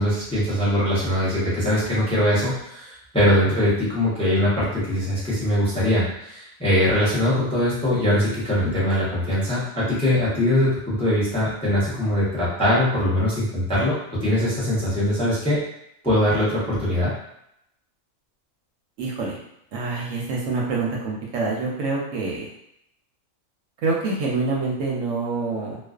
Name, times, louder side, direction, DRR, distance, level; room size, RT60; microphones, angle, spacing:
voice 1, 0.0-15.6 16.0-17.1, left 1 dB, 5° left, -8 dB, 0.5 m, -22 dB
voice 2, 19.0-19.4 19.7-22.5 23.8-25.8, right 3 dB, 75° right, -3 dB, 0.9 m, -26 dB
2.4 x 2.3 x 2.3 m, 0.77 s
omnidirectional pair, 1.4 m